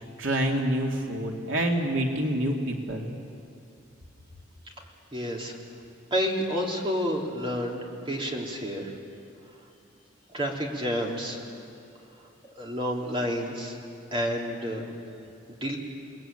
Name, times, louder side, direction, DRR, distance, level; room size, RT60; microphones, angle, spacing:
voice 1, 0.0-3.1, right 1 dB, 85° right, 0 dB, 2.6 m, -27 dB
voice 2, 5.1-5.6 6.1-8.9 10.3-11.4 12.6-13.8 14.1-14.8 15.5-15.8, equal, 25° right, -1 dB, 3.4 m, -29 dB
29.5 x 20.5 x 9.1 m, 2.7 s
head